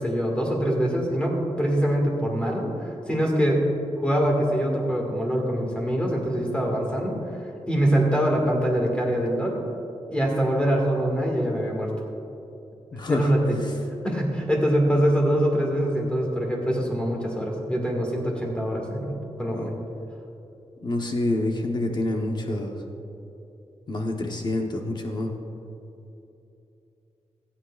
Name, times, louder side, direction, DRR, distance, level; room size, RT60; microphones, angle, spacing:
voice 1, 0.0-3.6 4.0-7.2 7.7-9.6 10.1-11.9 13.1-13.6 14.0-19.8, equal, 10° left, -1 dB, 1.8 m, -24 dB
voice 2, 12.9-13.3 13.6-13.7 19.5-19.7 20.8-22.8 23.9-25.3, left 1 dB, 40° left, 2 dB, 0.9 m, -27 dB
25.5 x 8.6 x 2.4 m, 2.9 s
wide cardioid pair, 165°, 12 cm